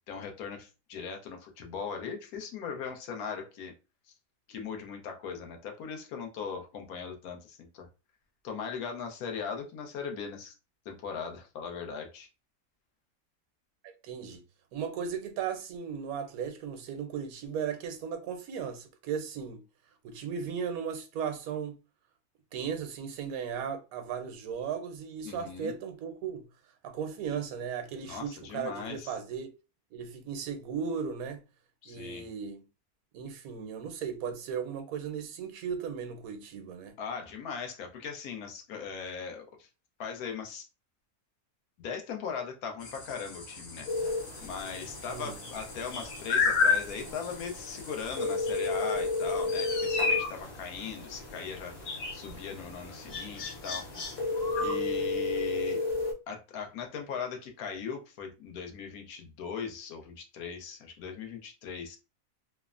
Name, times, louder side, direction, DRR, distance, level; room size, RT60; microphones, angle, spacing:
voice 1, 0.1-3.7 4.5-7.9 8.4-10.5 10.9-12.3 25.2-25.7 28.0-29.1 31.8-32.2 37.0-39.7 40.0-40.7 41.8-44.1 44.4-53.9 54.6-55.8 56.3-62.0, left 6 dB, 85° left, 1.2 m, -39 dB
voice 2, 13.8-14.4 14.7-19.6 20.0-21.8 22.5-26.5 26.8-29.5 29.9-31.4 31.9-32.6 33.1-36.9 45.1-45.4, right 7 dB, 75° right, 1.0 m, -36 dB
sound 1, 42.8-55.0, left 4 dB, 60° left, 1.3 m, -34 dB
sound 2, 43.9-56.1, left 2 dB, 40° left, 0.6 m, -34 dB
3.1 x 2.0 x 2.4 m
omnidirectional pair, 1.6 m